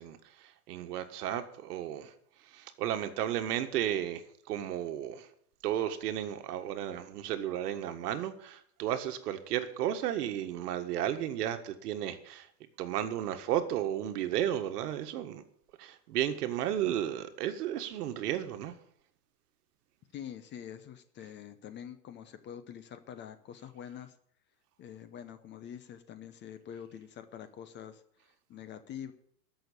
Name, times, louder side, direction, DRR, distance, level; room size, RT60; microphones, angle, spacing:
voice 1, 0.0-2.1 2.5-4.2 4.5-5.3 5.6-12.5 12.8-15.4 15.8-18.7, right 11 dB, 65° right, 1.6 m, -33 dB
voice 2, 20.1-24.2 24.8-29.1, left 9 dB, 20° left, 0.7 m, -46 dB
13.5 x 6.4 x 8.6 m
supercardioid pair, 140°, 49 cm